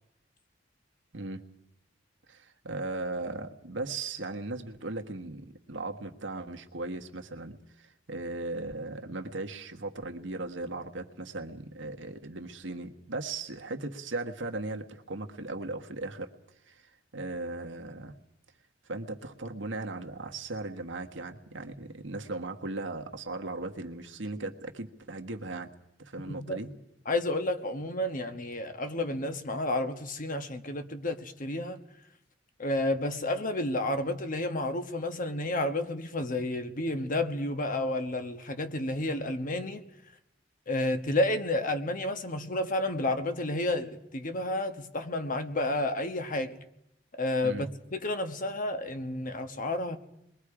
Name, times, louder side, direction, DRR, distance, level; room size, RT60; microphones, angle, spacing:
voice 1, 1.1-1.5 2.3-16.3 16.7-18.1 18.8-25.7 26.0-26.7 47.4-47.7, right 2 dB, 75° right, 1.5 m, -37 dB
voice 2, 26.3-26.6 27.1-31.8 32.6-39.8 40.7-46.6 47.2-50.0, left 1 dB, 45° left, 1.2 m, -31 dB
28.0 x 21.5 x 4.9 m
head